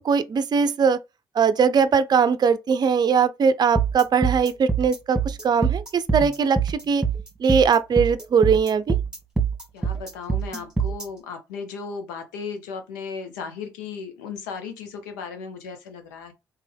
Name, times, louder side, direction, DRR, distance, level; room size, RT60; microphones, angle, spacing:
voice 1, 0.0-1.0 1.4-7.0 7.4-9.0, right 6 dB, 45° right, 0.5 m, -20 dB
sound 1, 3.8-11.1, right 6 dB, 10° right, 1.4 m, -24 dB
voice 2, 9.7-16.3, left 5 dB, 85° left, 0.7 m, -36 dB
3.3 x 3.1 x 3.4 m
hypercardioid pair, 45°, 10 cm